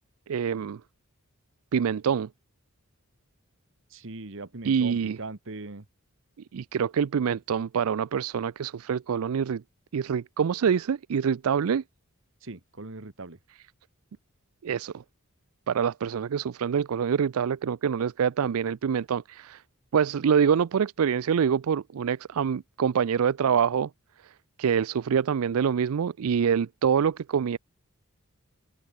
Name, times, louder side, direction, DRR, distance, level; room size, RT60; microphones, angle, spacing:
voice 1, 0.3-0.8 1.7-2.3 4.6-5.2 6.5-9.6 9.9-11.8 14.6-15.0 15.7-19.6 19.9-23.9 24.2-24.3 24.6-27.6, right 7 dB, 80° right, 0.4 m, -25 dB
voice 2, 3.9-5.8 12.4-13.4, right 2 dB, 60° right, 1.5 m, -40 dB
open air
head